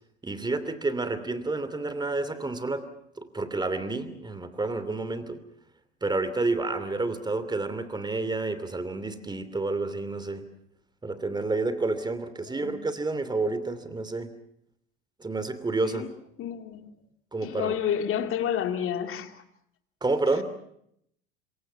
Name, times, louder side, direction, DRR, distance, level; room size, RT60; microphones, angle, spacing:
voice 1, 0.2-2.8 3.2-5.4 6.0-10.4 11.0-14.3 15.2-16.0 17.3-17.8 20.0-20.4, right 3 dB, 15° right, 2.9 m, -29 dB
voice 2, 16.4-16.9 17.4-19.4, left 9 dB, 40° left, 2.5 m, -30 dB
26.5 x 23.5 x 5.9 m
hypercardioid pair, 75°, 33 cm